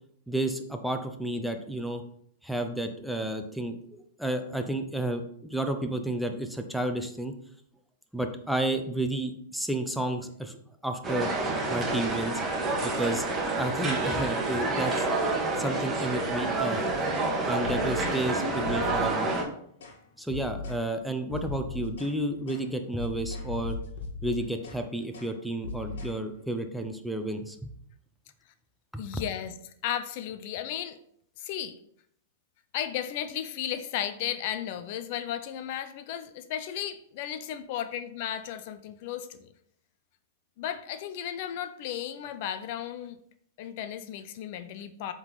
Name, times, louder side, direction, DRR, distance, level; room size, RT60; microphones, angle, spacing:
voice 1, 0.3-2.0 2.4-7.3 8.1-10.6 10.8-11.3 11.7-12.4 12.8-13.3 13.6-15.1 15.6-17.1 17.5-19.3 20.2-23.8 24.2-27.7 28.9-29.0, right 1 dB, ahead, 6 dB, 0.7 m, -31 dB
sound 1, 11.0-19.4, right 2 dB, 20° right, 1.5 m, -28 dB
sound 2, 17.1-17.3 17.6-18.2 18.6-19.5 19.8-20.0 20.3-20.8 21.3-22.1 22.5-22.7 23.0-24.8 25.1-25.3 25.6-26.2, left 3 dB, 75° left, 1.7 m, -38 dB
voice 2, 29.0-29.5 29.8-31.0 31.4-31.8 32.7-39.5 40.6-43.2 43.6-45.1, left 10 dB, 55° left, 11 dB, 0.6 m, -34 dB
7.7 x 3.9 x 4.1 m, 0.67 s
hypercardioid pair, 120°, 0 cm